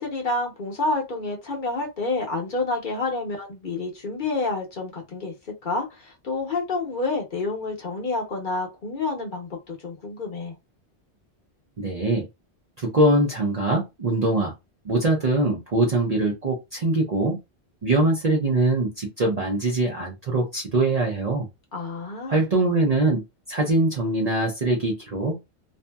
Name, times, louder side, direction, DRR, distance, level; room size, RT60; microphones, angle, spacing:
voice 1, 0.0-5.3 5.6-10.5 21.7-22.4, left 3 dB, 50° left, 0.9 m, -29 dB
voice 2, 11.8-12.3 12.8-14.5 14.8-17.4 17.8-21.5 22.3-25.4, right 2 dB, 45° right, 0.6 m, -22 dB
2.6 x 2.6 x 2.2 m
omnidirectional pair, 1.1 m